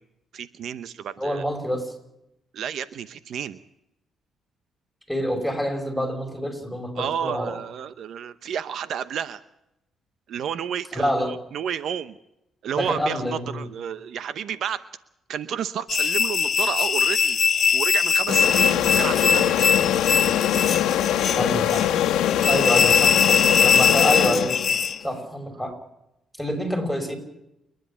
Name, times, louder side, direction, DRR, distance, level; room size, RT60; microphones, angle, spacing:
voice 1, 0.3-1.4 2.5-3.6 7.0-9.4 10.3-12.2 12.6-14.8 15.3-17.4 17.7-19.7 25.6-25.8, right 8 dB, 70° right, 14 dB, 0.8 m, -31 dB
voice 2, 1.2-1.9 5.1-7.6 10.9-11.3 12.7-13.6 21.3-21.9 22.4-24.6 25.0-25.7 26.4-27.2, equal, ahead, 4 dB, 6.0 m, -27 dB
sound 1, 15.9-25.0, left 6 dB, 50° left, 0.7 m, -21 dB
sound 2, 18.3-24.9, left 11 dB, 90° left, 1.3 m, -23 dB
29.0 x 10.5 x 8.7 m, 0.85 s
cardioid pair, 90°, 0 cm